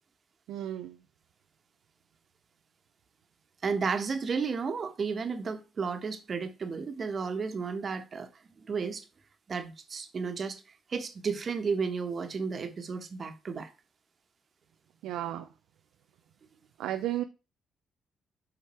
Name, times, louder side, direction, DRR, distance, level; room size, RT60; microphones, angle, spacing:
voice 1, 0.5-1.0 15.0-15.5 16.8-17.2, right 12 dB, 85° right, 0.5 m, -33 dB
voice 2, 3.6-8.3 8.6-9.0 9.5-10.6 10.9-13.7, right 5 dB, 50° right, 1.4 m, -33 dB
7.5 x 5.0 x 4.5 m
supercardioid pair, 65°, 0 cm